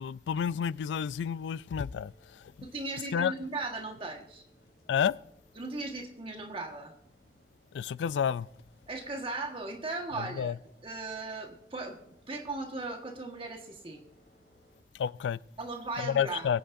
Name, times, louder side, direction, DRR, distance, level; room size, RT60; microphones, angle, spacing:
voice 1, 0.0-2.5 3.1-3.3 4.9-5.1 7.7-8.5 10.2-10.5 14.9-15.4 16.0-16.6, left 7 dB, 90° left, 0.3 m, -30 dB
sound 1, 0.5-14.8, left 1 dB, 60° left, 2.4 m, -65 dB
voice 2, 2.6-4.4 5.6-6.9 8.9-10.5 10.8-12.0 12.3-14.0 15.6-16.5, right 3 dB, 30° right, 1.5 m, -37 dB
23.0 x 8.7 x 2.6 m
head